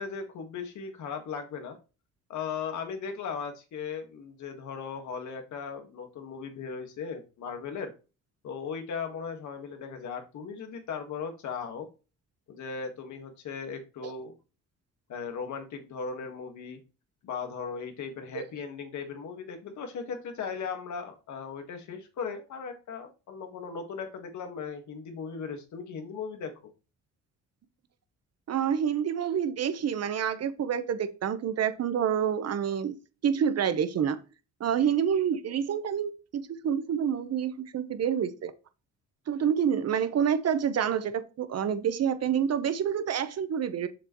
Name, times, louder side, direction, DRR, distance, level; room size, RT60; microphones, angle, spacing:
voice 1, 0.0-1.8 2.3-7.9 8.4-11.9 12.5-14.3 15.1-16.8 17.2-26.5, left 6 dB, 70° left, 1.8 m, -37 dB
voice 2, 28.5-33.0 33.2-34.2 34.6-38.5 39.3-43.9, right 8 dB, 55° right, 1.1 m, -28 dB
7.1 x 6.8 x 3.1 m
cardioid pair, 90°, 30 cm